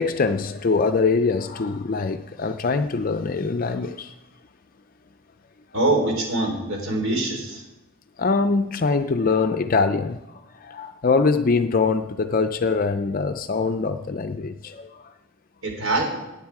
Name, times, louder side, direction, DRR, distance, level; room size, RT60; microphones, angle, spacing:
voice 1, 0.0-4.1 8.2-10.2 10.6-15.1, left 4 dB, 40° left, 8 dB, 0.4 m, -23 dB
voice 2, 5.7-7.6 15.6-16.1, right 2 dB, 75° right, 2 dB, 4.0 m, -23 dB
17.5 x 9.5 x 4.8 m, 0.97 s
head